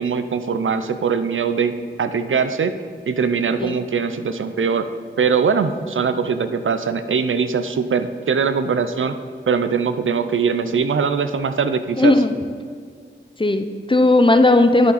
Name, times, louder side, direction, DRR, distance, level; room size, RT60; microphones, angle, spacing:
voice 1, 0.0-2.7 3.1-4.9 5.2-9.2 9.5-12.1, right 5 dB, 80° right, 10 dB, 0.5 m, -21 dB
voice 2, 12.0-12.3 13.4-14.9, left 2 dB, 25° left, 8 dB, 0.6 m, -15 dB
9.8 x 6.8 x 4.1 m, 2.1 s
wide cardioid pair, 50°, 20 cm